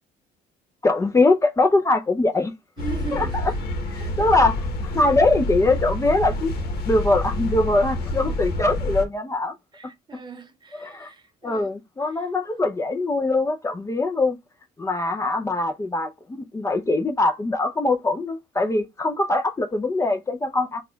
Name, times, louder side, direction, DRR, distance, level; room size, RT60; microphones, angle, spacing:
voice 1, 0.8-2.5 3.1-3.5 3.9-6.5 6.9-9.5 10.7-11.1 11.4-14.4 14.8-20.8, left 2 dB, 15° left, 0.5 m, -22 dB
sound 1, 2.8-9.0, left 1 dB, 65° left, 1.0 m, -28 dB
voice 2, 2.8-3.6 4.0-4.2 9.7-11.7 12.0-12.3, right 6 dB, 25° right, 0.7 m, -39 dB
4.0 x 2.3 x 3.8 m
cardioid pair, 110°, 17 cm